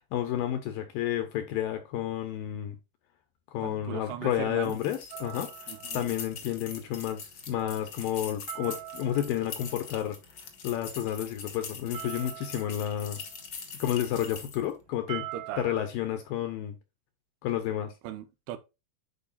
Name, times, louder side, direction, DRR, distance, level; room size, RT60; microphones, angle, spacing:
voice 1, 0.0-2.8 3.5-10.2 10.6-13.2 13.8-15.3 15.6-16.8 17.4-17.9, left 11 dB, 80° left, 2.2 m, -31 dB
voice 2, 3.6-4.8 5.7-6.1 15.3-15.7 18.0-18.6, right 11 dB, 85° right, 2.8 m, -38 dB
sound 1, 4.6-14.7, left 6 dB, 60° left, 1.2 m, -43 dB
sound 2, 5.1-15.9, right 14 dB, 50° right, 2.7 m, -46 dB
11.0 x 4.7 x 2.4 m
omnidirectional pair, 4.7 m